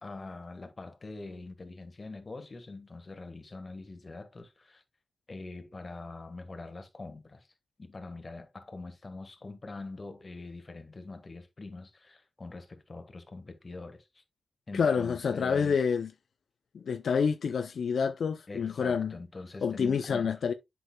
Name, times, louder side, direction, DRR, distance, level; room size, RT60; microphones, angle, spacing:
voice 1, 0.0-4.8 5.3-7.5 7.8-14.2 14.7-15.8 18.5-20.3, left 3 dB, 40° left, 1.5 m, -44 dB
voice 2, 14.7-16.1 16.7-19.1 19.6-20.5, left 6 dB, 80° left, 0.5 m, -28 dB
8.0 x 6.1 x 2.2 m
cardioid pair, 60°, 0 cm